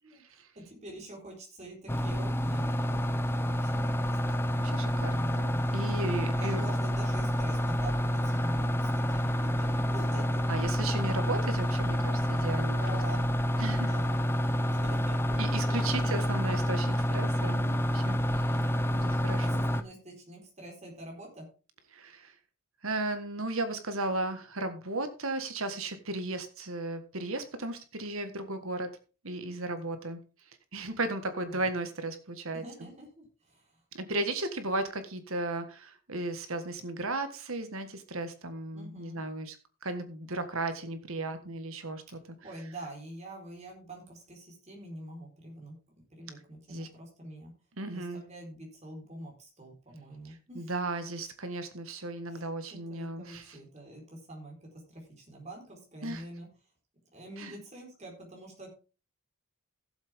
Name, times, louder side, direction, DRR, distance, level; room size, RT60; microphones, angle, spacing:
voice 1, 0.0-4.4 5.8-11.1 12.7-14.2 14.7-16.8 19.0-21.5 31.5-31.7 32.5-33.8 38.7-39.2 42.4-47.5 47.9-50.7 52.3-56.5 57.1-58.7, right 1 dB, 30° right, 0 dB, 4.5 m, -46 dB
sound 1, 1.9-19.8, equal, 10° left, 0.5 m, -28 dB
voice 2, 4.6-6.6 10.5-13.0 13.6-13.9 15.4-18.5 18.9-19.6 21.9-22.3 22.8-28.9 29.2-30.2 30.7-32.9 33.9-39.6 39.8-42.2 46.7-46.9 47.8-48.2 50.3-53.6 56.0-56.2 57.4-57.6, right 2 dB, 70° right, 9 dB, 1.7 m, -35 dB
16.0 x 7.7 x 3.6 m, 0.34 s
head